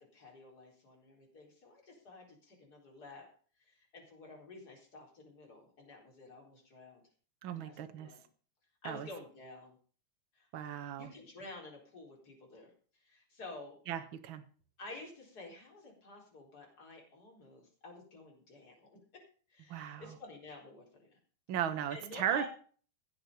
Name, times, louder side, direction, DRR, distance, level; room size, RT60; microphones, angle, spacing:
voice 1, 0.0-3.3 3.6-7.0 7.5-8.2 8.8-9.7 10.3-12.7 13.0-13.8 14.8-19.2 19.5-21.1 21.9-22.5, left 2 dB, 30° left, 0 dB, 4.7 m, -51 dB
voice 2, 7.4-8.1 8.9-9.1 10.5-11.1 13.9-14.4 19.7-20.1 21.5-22.4, right 10 dB, 55° right, 9 dB, 1.7 m, -36 dB
15.5 x 8.1 x 5.4 m, 0.42 s
omnidirectional pair, 3.3 m